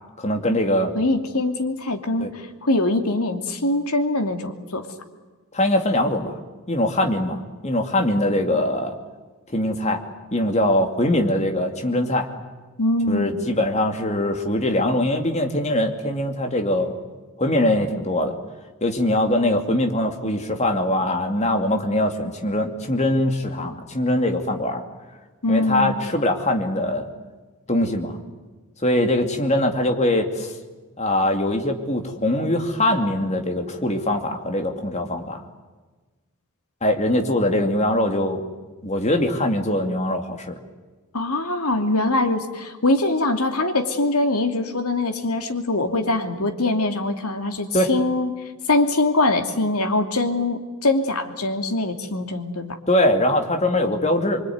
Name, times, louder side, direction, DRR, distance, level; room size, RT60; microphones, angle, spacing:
voice 1, 0.2-0.9 2.2-2.3 5.5-6.4 6.7-8.9 9.5-10.0 10.3-12.3 13.1-16.9 17.4-18.4 18.8-24.8 25.5-27.1 27.7-28.2 28.8-30.6 31.0-35.4 36.8-38.4 38.8-40.6 47.7-47.9 52.9-54.4, left 1 dB, 30° left, 4 dB, 2.6 m, -22 dB
voice 2, 0.9-4.9 12.8-13.4 25.4-26.0 41.1-48.3 48.7-52.8, left 2 dB, 90° left, 5 dB, 2.8 m, -23 dB
25.0 x 24.5 x 9.5 m, 1.3 s
head